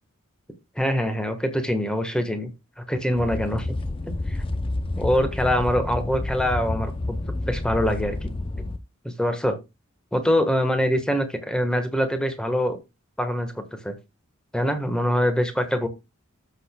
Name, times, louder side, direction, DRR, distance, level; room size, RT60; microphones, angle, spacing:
voice 1, 0.8-2.5 2.9-3.7 4.3-4.4 5.0-7.2 7.5-8.3 8.6-8.7 9.0-9.6 10.1-12.8 13.2-13.9 14.5-15.9, equal, 5° left, 7 dB, 1.3 m, -24 dB
sound 1, 3.1-8.8, left 2 dB, 25° left, 0.6 m, -29 dB
14.0 x 6.6 x 2.2 m, 0.24 s
head